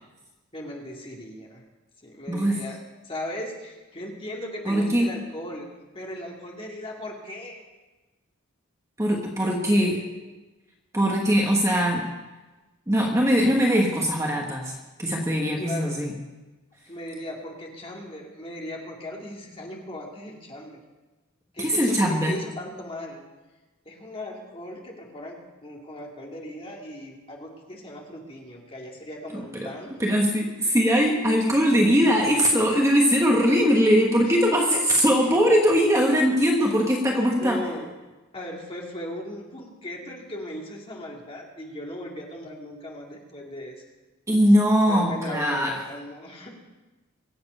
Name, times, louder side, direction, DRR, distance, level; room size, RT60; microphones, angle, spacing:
voice 1, 0.5-1.6 2.0-2.8 3.0-5.7 5.9-7.6 9.4-10.1 15.6-16.0 16.9-20.8 21.5-23.2 23.9-29.9 34.2-34.4 34.7-35.2 37.3-37.9 38.3-43.8 44.9-46.5, left 1 dB, 25° left, -1 dB, 2.4 m, -37 dB
voice 2, 2.3-2.6 4.6-5.1 9.0-10.0 10.9-12.1 12.9-14.7 15.0-16.1 21.6-22.4 29.3-37.7 44.3-45.7, equal, 15° right, -1 dB, 1.4 m, -21 dB
23.5 x 7.9 x 5.5 m, 1.2 s
head